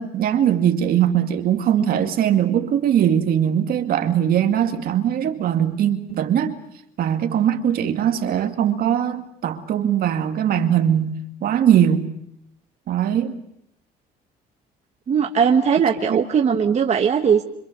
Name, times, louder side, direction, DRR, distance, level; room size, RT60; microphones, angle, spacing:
voice 1, 0.0-6.6 7.0-12.1 12.9-13.4 16.1-16.2, right 9 dB, 60° right, 2.3 m, -20 dB
voice 2, 15.1-17.4, right 7 dB, 40° right, 1.5 m, -19 dB
26.5 x 25.0 x 6.8 m
cardioid pair, 110°, 17 cm